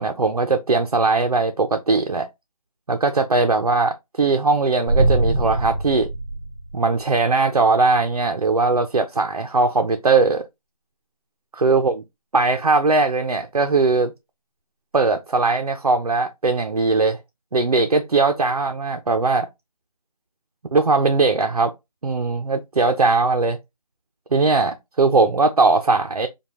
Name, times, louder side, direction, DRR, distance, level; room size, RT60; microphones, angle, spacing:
voice 1, 0.0-2.3 2.9-6.1 6.7-10.5 11.6-12.0 12.3-14.1 14.9-17.2 17.5-19.5 20.7-21.7 22.0-23.6 24.3-26.3, right 3 dB, 70° right, 0.6 m, -19 dB
sound 1, 4.9-7.1, right 2 dB, 15° left, 0.6 m, -22 dB
5.1 x 2.3 x 2.8 m
figure-of-eight pair, 170°, 19 cm